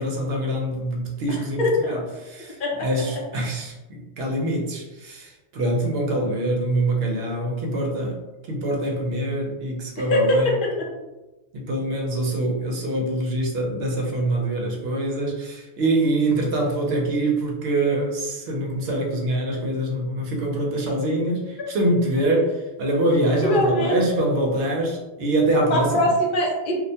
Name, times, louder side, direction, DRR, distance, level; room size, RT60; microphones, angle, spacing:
voice 1, 0.0-1.6 1.9-8.2 8.5-10.6 11.5-25.9, right 1 dB, 65° right, -1 dB, 0.8 m, -24 dB
voice 2, 1.3-1.9 2.6-2.9 10.0-10.9 23.4-24.0 25.7-26.8, left 1 dB, 55° left, -1 dB, 0.7 m, -22 dB
2.4 x 2.1 x 2.7 m, 1.1 s
omnidirectional pair, 1.2 m